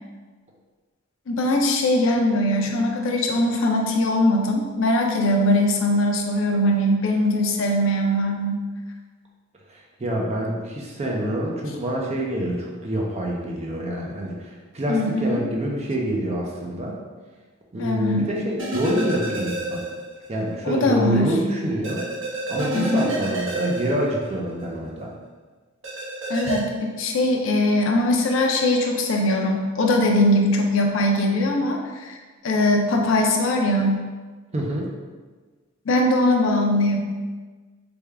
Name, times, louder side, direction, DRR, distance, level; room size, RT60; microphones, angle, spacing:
voice 1, 1.3-8.6 14.9-15.4 17.8-18.3 20.6-21.3 22.7-23.1 26.3-32.2 32.4-34.0 35.9-37.0, left 1 dB, 60° left, 2 dB, 0.4 m, -21 dB
voice 2, 9.7-17.0 17.7-19.8 20.3-22.1 22.5-25.1 34.5-34.9, right 1 dB, 30° right, -1 dB, 0.4 m, -26 dB
sound 1, 18.6-20.3 20.6-20.7 21.8-24.7 25.8-26.6, right 2 dB, 60° right, 0.7 m, -29 dB
3.4 x 2.2 x 3.3 m, 1.4 s
head